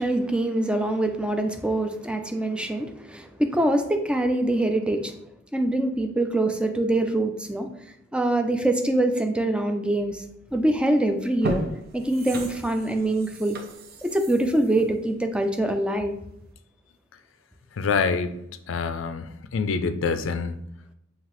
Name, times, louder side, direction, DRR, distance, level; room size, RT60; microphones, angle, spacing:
voice 1, 0.0-5.1 5.5-7.7 8.1-10.2 10.5-11.6 11.9-13.6 14.0-16.1, right 1 dB, 5° right, 6 dB, 0.4 m, -24 dB
sound 1, 10.6-10.8 11.2-16.0 16.4-16.5, right 1 dB, 55° right, 0.6 m, -36 dB
voice 2, 17.7-18.4 18.7-20.6, left 5 dB, 70° left, 10 dB, 0.4 m, -26 dB
5.6 x 2.8 x 3.1 m, 0.76 s
head